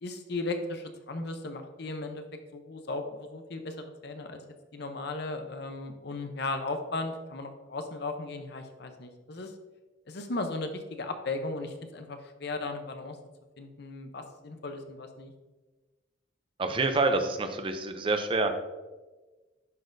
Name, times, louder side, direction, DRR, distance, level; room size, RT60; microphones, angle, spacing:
voice 1, 0.0-4.4 4.7-9.5 10.1-13.2 13.6-15.3, left 2 dB, 60° left, 6 dB, 0.7 m, -36 dB
voice 2, 16.6-18.5, right 3 dB, 30° right, 7 dB, 0.5 m, -27 dB
11.0 x 4.1 x 2.6 m, 1.2 s
head